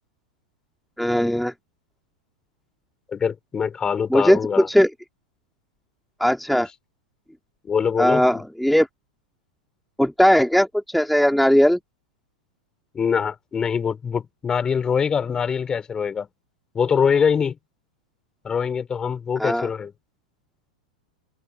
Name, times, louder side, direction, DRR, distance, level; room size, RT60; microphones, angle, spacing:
voice 1, 1.0-1.5 4.1-4.9 6.2-6.7 8.0-8.9 10.0-11.8 19.4-19.7, equal, ahead, 2.7 m, -18 dB
voice 2, 3.1-4.7 7.6-8.4 12.9-16.3 16.7-17.6 18.4-19.9, left 6 dB, 20° left, 5.1 m, -23 dB
figure-of-eight pair, 95°, 4 cm